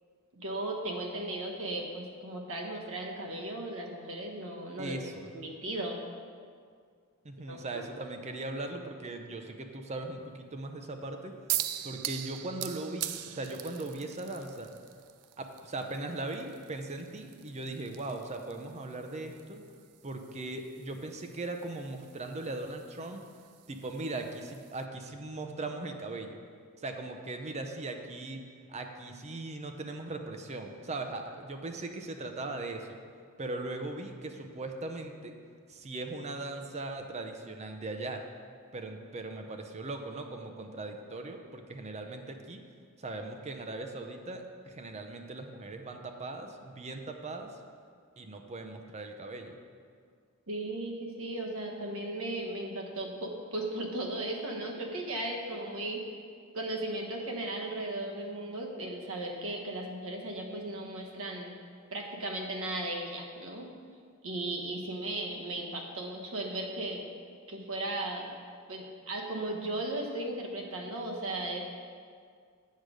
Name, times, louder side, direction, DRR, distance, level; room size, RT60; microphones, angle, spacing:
voice 1, 0.3-4.9 5.3-6.0 7.5-7.8 50.5-56.0 56.5-61.5 61.9-63.7 64.2-67.0 67.5-68.3 68.7-71.6, right 1 dB, 65° right, 0 dB, 1.2 m, -36 dB
voice 2, 4.8-5.3 7.2-11.4 11.8-14.7 15.4-19.6 20.0-23.3 23.7-26.4 26.8-32.9 33.4-35.3 35.7-38.2 38.7-42.6 43.0-47.6 48.2-49.6, right 2 dB, 30° right, 5 dB, 0.6 m, -39 dB
sound 1, 11.5-24.8, right 13 dB, 90° right, 0.4 m, -42 dB
8.3 x 5.0 x 6.3 m, 2.1 s
head